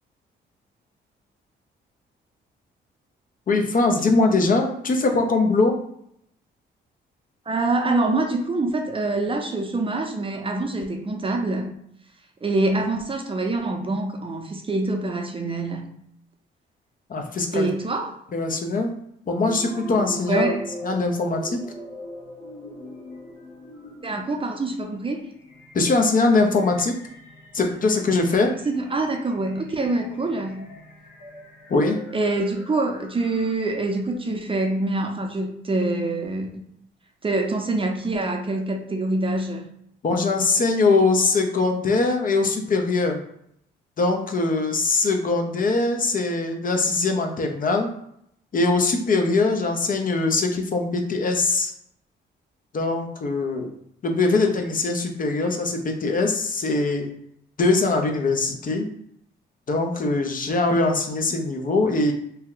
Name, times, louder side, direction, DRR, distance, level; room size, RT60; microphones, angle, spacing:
voice 1, 3.5-5.7 17.1-17.7 18.3-18.9 19.3-20.5 20.8-21.6 25.7-26.9 27.5-28.5 31.7-32.0 40.0-43.2 44.0-47.9 48.5-51.7 52.7-53.7 54.0-57.1 57.6-58.9 59.7-62.1, left 3 dB, 45° left, 3 dB, 0.6 m, -22 dB
voice 2, 7.5-11.7 12.4-15.9 17.5-18.1 20.3-20.6 24.0-25.2 28.7-30.7 32.1-36.6 37.2-39.7, right 2 dB, 25° right, 3 dB, 0.6 m, -25 dB
sound 1, 19.3-33.8, equal, 65° left, 1.1 m, -41 dB
2.8 x 2.1 x 3.8 m, 0.72 s
cardioid pair, 75°, 20 cm